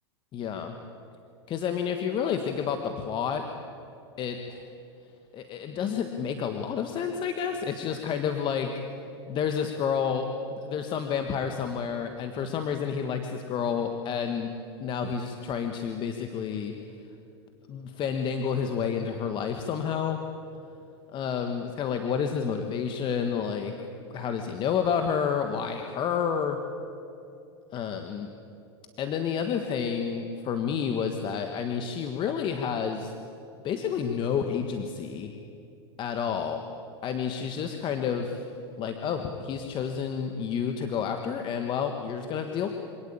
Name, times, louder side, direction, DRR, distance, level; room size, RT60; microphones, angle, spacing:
voice 1, 0.3-0.7 1.5-3.4 4.2-4.7 5.3-8.7 9.3-14.5 14.8-16.7 17.7-20.2 21.1-23.7 24.1-26.6 27.7-28.3 29.0-33.1 33.6-35.3 36.0-36.6 37.0-38.4 38.8-42.7, left 7 dB, 35° left, 6 dB, 1.5 m, -30 dB
25.5 x 18.0 x 8.8 m, 2.7 s
hypercardioid pair, 115°, 14 cm